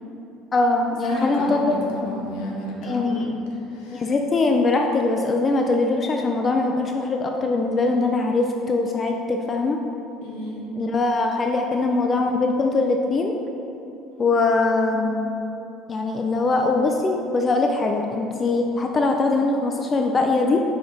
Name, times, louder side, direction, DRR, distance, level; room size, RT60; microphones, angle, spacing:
voice 1, 0.5-2.3 2.8-3.4 3.9-9.8 10.8-13.4 14.2-15.2 15.9-20.6, left 3 dB, 30° left, 2 dB, 0.4 m, -22 dB
voice 2, 1.0-3.3 3.6-4.1 10.2-10.7 14.9-15.1, equal, 85° left, -2 dB, 1.2 m, -32 dB
5.0 x 4.8 x 4.0 m, 2.9 s
supercardioid pair, 105°, 0 cm